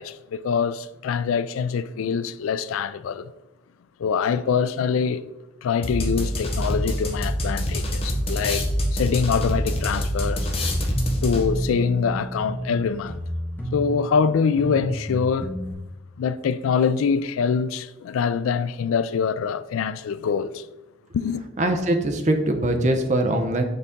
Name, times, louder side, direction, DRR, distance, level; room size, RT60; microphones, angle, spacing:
voice 1, 0.0-3.3 4.0-5.2 5.6-10.5 11.2-13.2 13.7-15.5 16.2-20.6 21.1-21.4, left 6 dB, 85° left, 0.3 m, -24 dB
sound 1, 5.8-11.7, equal, 30° left, 0.8 m, -26 dB
sound 2, 10.4-15.7, equal, 10° left, 1.0 m, -31 dB
voice 2, 21.6-23.7, right 1 dB, 35° right, 0.7 m, -22 dB
6.7 x 4.0 x 3.6 m
head